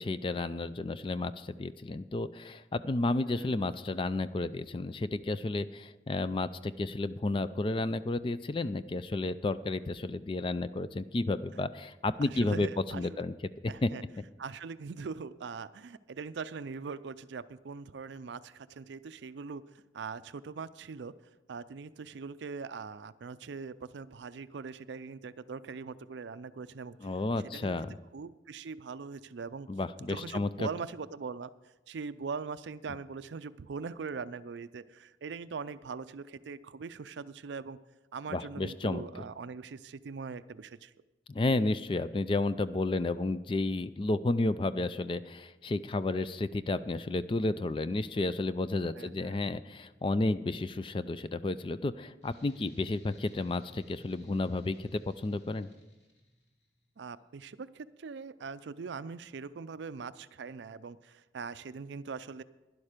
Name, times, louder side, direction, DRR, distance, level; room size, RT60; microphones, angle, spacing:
voice 1, 0.0-12.7 12.9-13.3 13.6-13.9 27.0-28.0 29.7-30.7 38.3-39.0 41.3-55.7, left 2 dB, 25° left, 13 dB, 0.3 m, -32 dB
voice 2, 3.2-3.6 11.5-11.6 12.2-13.2 13.7-14.0 14.4-21.1 21.5-27.1 27.5-27.8 28.1-29.7 30.1-31.5 31.9-37.8 38.1-40.9 49.0-49.5 57.0-62.4, right 5 dB, 70° right, 15 dB, 0.4 m, -41 dB
sound 1, 52.2-56.7, equal, 70° left, 2.5 m, -59 dB
11.5 x 11.0 x 5.0 m, 1.1 s
head